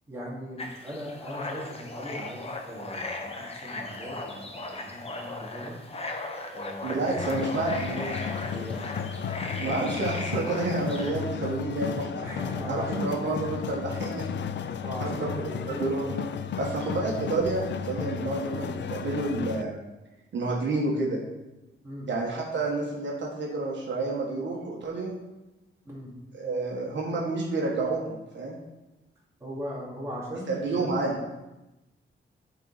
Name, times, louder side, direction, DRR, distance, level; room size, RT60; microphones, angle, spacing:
voice 1, 0.1-5.8 6.5-7.0 8.5-8.9 12.2-13.6 14.8-15.9 21.8-22.1 25.8-26.2 29.4-31.3, equal, 15° right, -7 dB, 2.4 m, -38 dB
sound 1, 0.6-11.1, left 2 dB, 30° left, 0.8 m, -37 dB
voice 2, 6.8-8.2 9.5-12.3 12.7-14.2 15.0-15.3 15.8-16.3 16.6-19.8 20.3-21.2 22.1-25.1 26.4-28.6 30.5-31.2, right 2 dB, 60° right, -3 dB, 1.5 m, -29 dB
sound 2, 7.2-19.6, left 7 dB, 60° left, 0.4 m, -34 dB
12.0 x 4.1 x 4.1 m, 1.0 s
wide cardioid pair, 175°, 21 cm